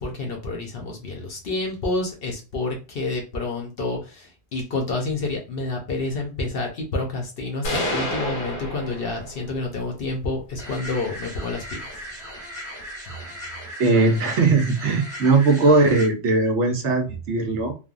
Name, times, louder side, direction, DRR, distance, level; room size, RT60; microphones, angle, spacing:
voice 1, 0.0-12.0 13.1-13.2, left 2 dB, 55° left, 1 dB, 0.8 m, -29 dB
sound 1, 7.6-9.6, equal, 85° left, 1.2 m, -29 dB
sound 2, 10.6-16.1, equal, 40° right, 1.1 m, -37 dB
voice 2, 13.8-17.7, right 3 dB, 70° right, 3 dB, 0.9 m, -19 dB
3.3 x 2.1 x 2.4 m, 0.32 s
omnidirectional pair, 1.3 m